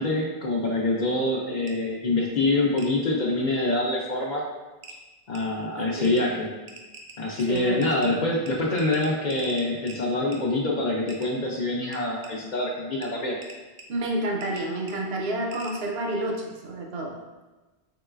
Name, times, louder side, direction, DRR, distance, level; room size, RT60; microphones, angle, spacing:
voice 1, 0.0-4.4 5.3-6.5 7.2-13.4, left 2 dB, 55° left, -2 dB, 0.6 m, -25 dB
sound 1, 1.7-1.8 2.8-2.9 4.3-4.4 4.8-5.0 5.3-5.4 6.0-6.2 6.7-8.1 8.5-8.6 8.8-10.0 10.3-10.4 11.1-11.3 11.9-12.3 13.0-13.1 13.4-13.8 14.4-14.6 14.9-15.0 15.5-15.8, right 3 dB, 50° right, 0.5 m, -44 dB
voice 2, 5.8-6.3 7.5-8.3 13.9-17.2, right 1 dB, 75° right, 0 dB, 0.9 m, -30 dB
3.8 x 3.7 x 2.4 m, 1.2 s
omnidirectional pair, 1.1 m